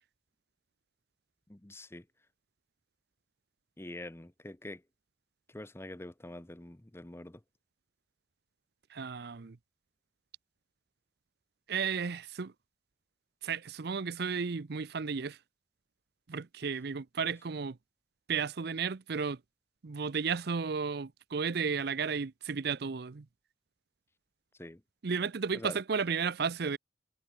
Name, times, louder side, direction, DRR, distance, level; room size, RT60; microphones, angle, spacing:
voice 1, 1.5-2.1 3.8-4.8 5.5-7.4 24.6-24.8 25.5-25.8, left 1 dB, 15° left, 0.8 m, -45 dB
voice 2, 8.9-9.6 11.7-12.5 13.4-15.4 16.3-17.8 18.3-19.4 19.8-23.3 25.0-26.8, right 5 dB, 65° right, 0.6 m, -33 dB
head